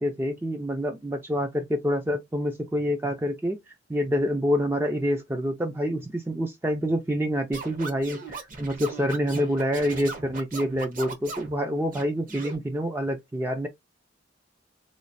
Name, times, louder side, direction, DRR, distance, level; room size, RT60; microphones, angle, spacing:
voice 1, 0.0-13.7, equal, 10° right, 0.4 m, -27 dB
Scratching (performance technique), 7.5-11.5 11.9-12.6, right 3 dB, 45° right, 1.0 m, -38 dB
3.1 x 2.4 x 4.0 m
head